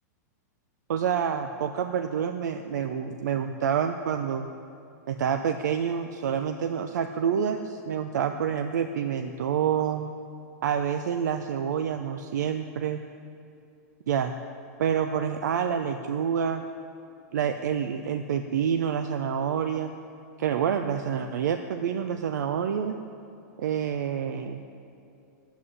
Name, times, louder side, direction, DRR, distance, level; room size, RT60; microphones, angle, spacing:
voice 1, 0.9-4.5 5.1-10.1 10.6-13.0 14.1-14.3 14.8-16.6 17.3-19.9 20.4-23.0 23.6-24.6, right 8 dB, 85° right, 7 dB, 0.6 m, -28 dB
9.9 x 8.2 x 9.6 m, 2.6 s
supercardioid pair, 180°, 9 cm